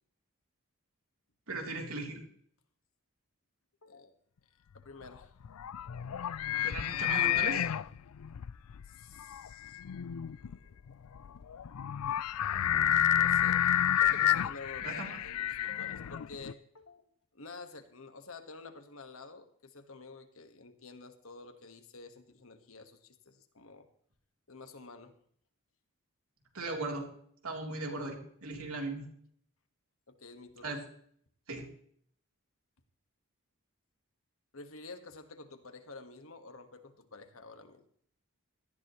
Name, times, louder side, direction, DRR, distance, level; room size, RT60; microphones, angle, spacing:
voice 1, 1.5-2.2 6.6-7.7 14.8-15.2 26.5-27.1 27.4-29.1 30.6-30.8 31.5-31.7, right 3 dB, 75° right, 1 dB, 3.4 m, -38 dB
voice 2, 3.8-4.1 4.7-5.3 8.9-9.8 10.4-10.8 12.1-12.3 12.6-13.6 14.0-17.0 17.3-23.9 24.5-25.1 30.1-30.8 34.5-37.8, left 3 dB, 70° left, 7 dB, 1.6 m, -50 dB
sound 1, 5.1-16.5, left 11 dB, 85° left, 0.4 m, -30 dB
17.5 x 14.5 x 3.1 m, 0.64 s
head